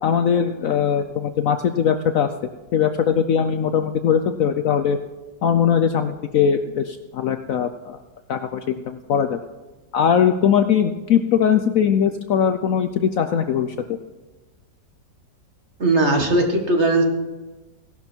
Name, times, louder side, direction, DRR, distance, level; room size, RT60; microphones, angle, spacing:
voice 1, 0.0-2.3 2.7-5.0 5.4-8.0 8.3-9.4 9.9-14.0, left 8 dB, 65° left, 9 dB, 0.9 m, -20 dB
voice 2, 15.8-17.0, right 2 dB, 40° right, 3 dB, 1.8 m, -18 dB
16.0 x 11.5 x 4.5 m, 1.2 s
omnidirectional pair, 1.9 m